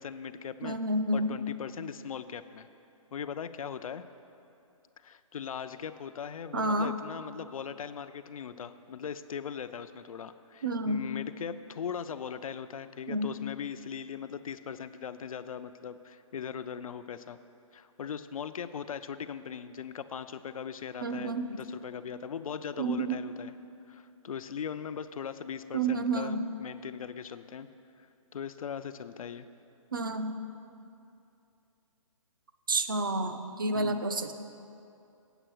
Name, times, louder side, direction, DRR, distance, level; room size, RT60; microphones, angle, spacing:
voice 1, 0.0-0.8 1.1-2.7 3.1-4.0 5.0-17.4 17.7-23.5 23.9-27.7 28.3-29.5 33.7-34.0, left 7 dB, 85° left, 11 dB, 0.5 m, -39 dB
voice 2, 0.6-1.3 6.5-6.9 10.6-11.0 13.1-13.3 21.0-21.6 22.8-23.2 25.7-26.4 29.9-30.4 32.7-34.3, right 2 dB, 40° right, 8 dB, 0.4 m, -29 dB
8.0 x 6.3 x 6.1 m, 2.7 s
hypercardioid pair, 180°, 17 cm